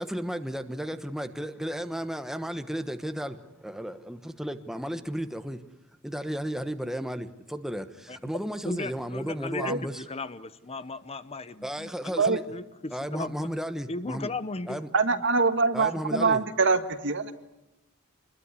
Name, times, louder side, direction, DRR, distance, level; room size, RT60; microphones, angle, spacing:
voice 1, 0.0-5.7 6.0-10.0 11.6-12.4 12.9-14.3 14.7-14.9 15.7-16.4, equal, ahead, 9 dB, 1.1 m, -34 dB
voice 2, 8.6-13.5 13.9-14.8 15.1-15.2 15.9-16.3, left 2 dB, 30° left, 13 dB, 0.9 m, -36 dB
voice 3, 14.9-17.3, right 4 dB, 60° right, 9 dB, 1.7 m, -24 dB
26.5 x 21.0 x 9.8 m, 0.95 s
head